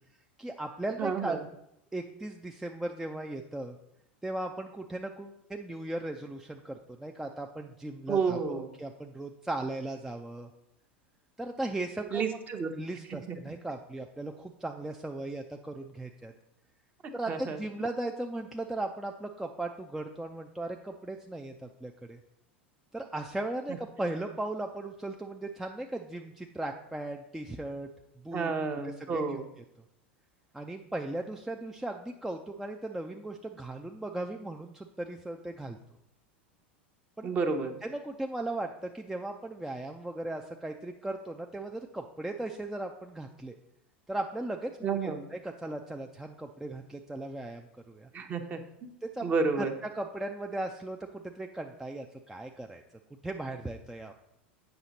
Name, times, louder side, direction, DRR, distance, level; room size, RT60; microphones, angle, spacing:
voice 1, 0.4-1.5 1.9-3.8 4.2-10.5 11.4-12.4 12.7-16.3 17.1-22.2 22.9-27.9 28.2-28.5 28.8-29.4 30.5-35.8 37.2-37.3 37.8-43.6 44.1-48.1 49.0-49.3 49.6-52.8 53.2-54.1, right 2 dB, 5° right, 3 dB, 0.4 m, -37 dB
voice 2, 1.0-1.4 8.1-8.7 12.1-12.7 13.3-13.4 17.3-17.6 28.3-29.5 37.2-37.7 44.8-45.2 48.1-48.6 49.2-49.7, right 5 dB, 30° right, 6 dB, 0.9 m, -30 dB
8.0 x 5.6 x 4.0 m, 0.80 s
figure-of-eight pair, 85°, 6 cm